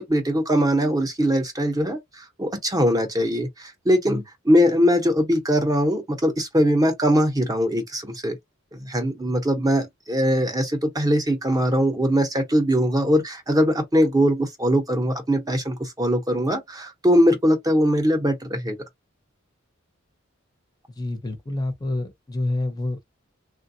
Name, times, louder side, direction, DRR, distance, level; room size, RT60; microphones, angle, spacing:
voice 1, 0.0-8.4 8.7-18.8, equal, 20° right, 0.7 m, -21 dB
voice 2, 21.0-23.0, left 2 dB, 20° left, 0.6 m, -28 dB
3.3 x 2.2 x 2.6 m
head